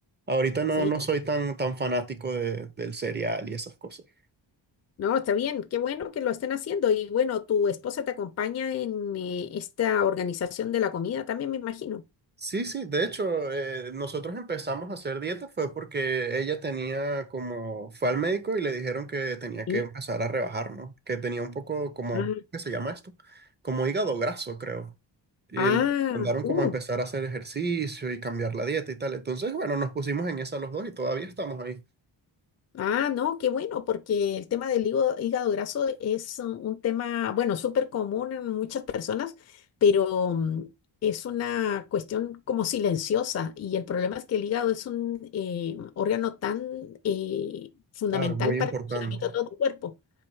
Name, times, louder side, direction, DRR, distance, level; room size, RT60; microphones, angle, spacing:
voice 1, 0.3-4.0 12.4-24.9 25.5-25.9 26.1-31.8 48.1-49.3, right 3 dB, 25° right, 0.5 m, -30 dB
voice 2, 5.0-12.0 19.7-19.8 22.1-22.4 25.6-26.7 32.7-40.7 41.0-47.7 48.0-49.9, left 8 dB, 35° left, 0.4 m, -28 dB
4.2 x 2.6 x 4.5 m
wide cardioid pair, 115°, 45 cm